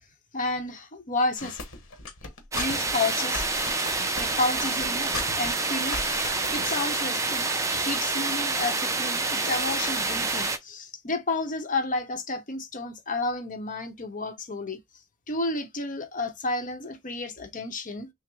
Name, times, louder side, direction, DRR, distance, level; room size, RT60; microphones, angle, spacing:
voice 1, 0.3-1.6 2.5-3.4 4.2-14.8 15.3-18.1, left 2 dB, 40° left, 0.8 m, -31 dB
sound 1, 1.4-6.7, left 3 dB, 85° left, 1.1 m, -37 dB
sound 2, 2.5-10.6, right 3 dB, 15° right, 0.5 m, -27 dB
6.0 x 2.0 x 3.3 m
head